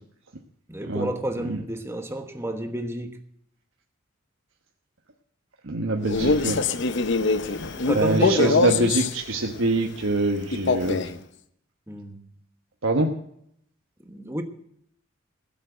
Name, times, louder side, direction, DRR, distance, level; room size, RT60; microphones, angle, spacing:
voice 1, 0.7-3.2 7.8-8.6 11.9-12.3 14.1-14.4, right 1 dB, 10° right, 1.2 m, -30 dB
voice 2, 5.6-6.6 7.5-11.0 12.8-13.1, right 2 dB, 70° right, 1.2 m, -24 dB
Male speech man speaking, 6.0-9.2 10.5-11.2, left 3 dB, 55° left, 0.7 m, -23 dB
16.5 x 7.6 x 7.9 m
head